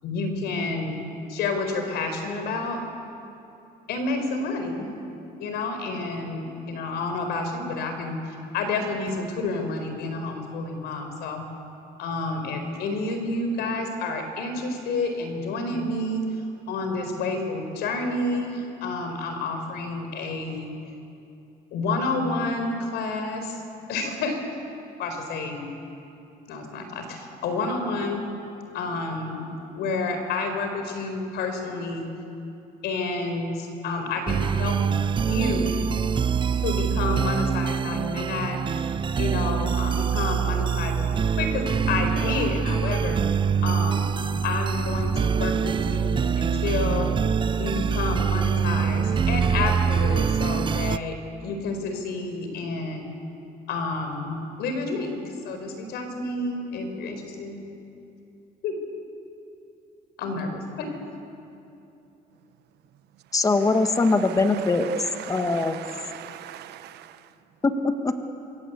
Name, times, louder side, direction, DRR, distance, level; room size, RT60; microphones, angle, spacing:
voice 1, 0.0-1.0 1.3-2.8 3.9-4.9 5.4-11.4 12.0-16.2 16.7-20.7 21.7-23.6 23.9-24.3 25.0-25.7 26.5-28.2 28.7-29.5 29.7-32.1 32.8-34.8 35.1-35.7 36.6-38.8 39.2-41.1 41.4-43.2 43.6-44.2 44.4-47.1 47.6-51.1 51.4-53.1 53.7-57.6 58.6-58.7 60.2-61.1, left 3 dB, 80° left, 5 dB, 4.7 m, -29 dB
sound 1, 34.3-51.0, right 6 dB, 30° right, 0.6 m, -24 dB
voice 2, 63.3-64.9 65.3-65.8 67.6-68.1, left 3 dB, 20° left, 7 dB, 1.6 m, -22 dB
voice 3, 64.0-67.2, right 13 dB, 75° right, 12 dB, 1.2 m, -40 dB
27.0 x 22.5 x 8.2 m, 2.8 s
cardioid pair, 110°, 17 cm